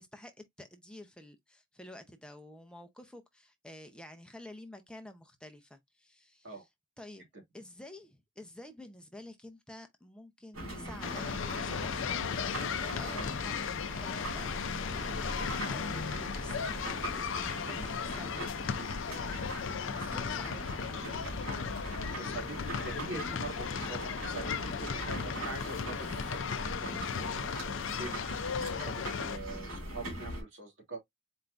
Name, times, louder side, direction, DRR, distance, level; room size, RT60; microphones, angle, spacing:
voice 1, 0.0-6.6 7.0-7.2 7.5-11.2 11.6-17.8 18.0-19.6 19.9-21.6, left 1 dB, 5° left, 0.7 m, -50 dB
sound 1, 10.5-30.4, right 1 dB, 85° right, 2.7 m, -41 dB
sound 2, 11.0-29.4, left 6 dB, 65° left, 0.4 m, -36 dB
voice 2, 22.2-31.0, right 2 dB, 60° right, 2.3 m, -44 dB
4.5 x 3.8 x 2.4 m
head